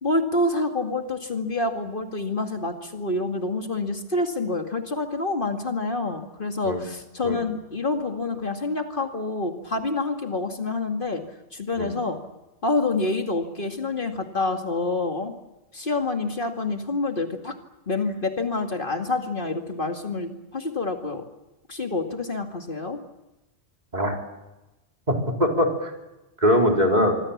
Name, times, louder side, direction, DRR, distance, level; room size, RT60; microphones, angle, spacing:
voice 1, 0.0-11.2 11.5-12.2 12.6-15.4 15.7-17.5 17.9-21.2 21.7-23.0, left 3 dB, 50° left, 4 dB, 2.3 m, -27 dB
voice 2, 25.1-25.9 26.4-27.2, equal, 40° right, 1 dB, 4.4 m, -21 dB
25.5 x 25.0 x 7.3 m, 1.0 s
omnidirectional pair, 1.1 m